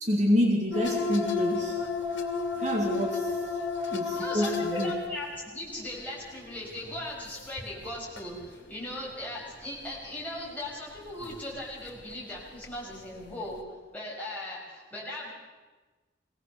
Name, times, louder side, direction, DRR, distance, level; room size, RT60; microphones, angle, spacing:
voice 1, 0.0-1.8 2.6-3.3 3.9-4.9, equal, 35° right, 0 dB, 2.1 m, -27 dB
sound 1, 0.7-5.4 5.8-6.2 6.5-8.5 9.1-9.3 11.2-11.6 11.8-11.9 12.6-13.2 13.6-13.7, left 4 dB, 70° left, 2.7 m, -32 dB
voice 2, 4.1-13.6 13.9-15.3, left 1 dB, 10° left, -5 dB, 6.2 m, -38 dB
21.5 x 18.0 x 6.9 m, 1.3 s
head